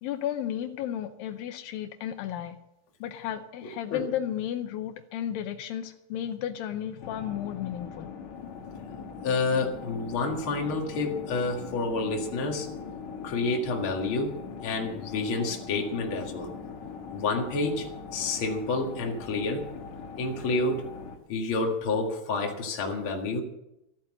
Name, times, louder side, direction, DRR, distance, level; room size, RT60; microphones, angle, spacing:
voice 1, 0.0-2.6 3.0-8.1, left 10 dB, 80° left, 8 dB, 2.4 m, -33 dB
sound 1, 7.0-21.2, left 6 dB, 60° left, 2.4 m, -41 dB
voice 2, 9.2-12.7 13.2-14.4 14.6-16.5 17.1-17.9 18.1-19.7 20.2-20.9 21.3-23.4, left 3 dB, 40° left, 1 dB, 2.3 m, -29 dB
14.5 x 8.7 x 7.6 m, 0.85 s
omnidirectional pair, 4.1 m